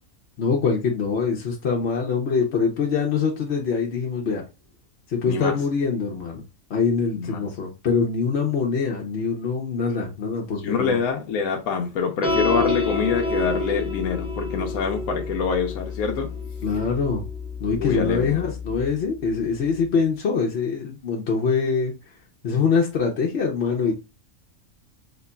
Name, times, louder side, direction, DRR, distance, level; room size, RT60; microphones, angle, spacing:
voice 1, 0.4-4.4 5.1-6.4 6.7-11.0 16.6-17.2 17.6-21.9 22.4-23.9, left 5 dB, 55° left, 0.9 m, -24 dB
voice 2, 5.3-5.6 7.2-7.5 10.6-16.3 17.8-18.4, left 6 dB, 85° left, 1.1 m, -25 dB
sound 1, 12.2-18.9, left 3 dB, 5° right, 0.8 m, -28 dB
4.0 x 3.0 x 2.2 m
omnidirectional pair, 1.4 m